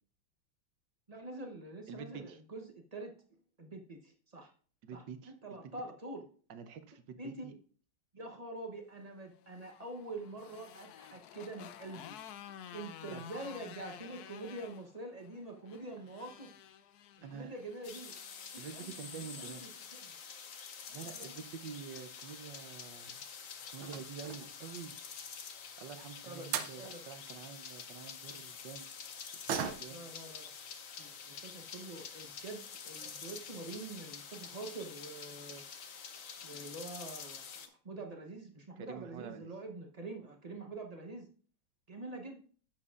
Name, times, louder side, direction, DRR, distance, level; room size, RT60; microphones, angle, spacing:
voice 1, 1.1-3.1 3.6-4.5 4.9-6.3 7.2-7.5 8.1-12.2 12.7-16.5 17.3-18.1 18.5-19.7 20.9-21.4 26.2-27.0 29.9-30.5 31.0-35.6 36.4-41.3 41.9-42.4, right 2 dB, 45° right, 2 dB, 0.5 m, -45 dB
voice 2, 1.9-2.4 4.8-5.3 6.5-7.5 13.1-13.2 17.2-17.5 18.6-19.7 20.6-20.7 20.9-23.2 23.7-24.9 25.8-28.9 29.6-30.0 30.5-30.6 38.8-39.5, right 7 dB, 70° right, 9 dB, 1.3 m, -47 dB
Motorcycle, 9.3-18.7, left 10 dB, 75° left, 0.9 m, -52 dB
sound 1, 17.8-37.7, left 6 dB, 55° left, 1.0 m, -47 dB
sound 2, 22.9-23.2 23.8-24.6 26.1-26.2 26.5-26.8 29.5-30.1 30.5-30.6 31.0-31.2 31.9-32.0 32.4-32.5 32.9-33.2 33.5-33.6 33.9-34.0, right 8 dB, 85° right, 1.6 m, -39 dB
10.5 x 7.3 x 2.5 m, 0.44 s
omnidirectional pair, 2.2 m